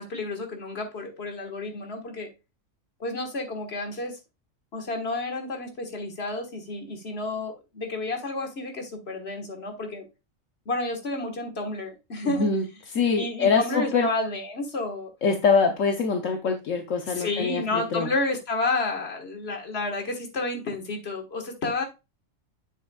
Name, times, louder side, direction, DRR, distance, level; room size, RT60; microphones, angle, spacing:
voice 1, 0.0-2.3 3.0-4.2 4.7-10.0 10.7-12.5 13.2-15.1 17.2-21.8, left 2 dB, 50° left, 3 dB, 1.8 m, -30 dB
voice 2, 12.2-12.6 12.9-14.1 15.2-18.1, left 5 dB, 75° left, 4 dB, 1.2 m, -24 dB
7.6 x 7.0 x 2.3 m, 0.26 s
omnidirectional pair, 1.4 m